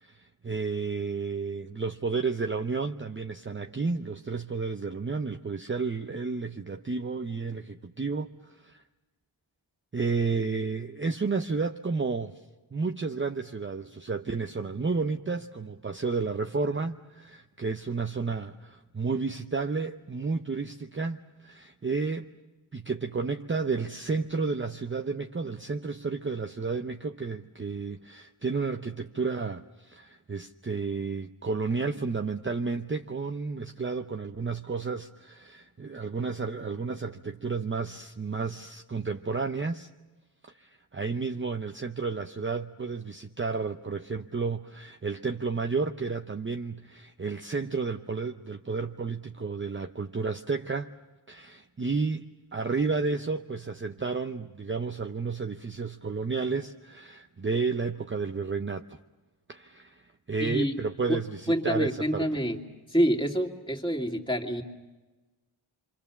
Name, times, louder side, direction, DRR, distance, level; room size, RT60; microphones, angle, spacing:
voice 1, 0.0-8.8 9.9-12.3 12.7-22.3 22.7-39.9 40.6-50.9 51.3-59.0 59.5-60.0 60.3-62.3, right 4 dB, 25° right, 0.7 m, -31 dB
voice 2, 60.4-60.8 61.1-61.2 61.5-62.6 62.9-64.6, equal, 10° left, 2.6 m, -27 dB
27.0 x 25.0 x 7.0 m
wide cardioid pair, 75°, 49 cm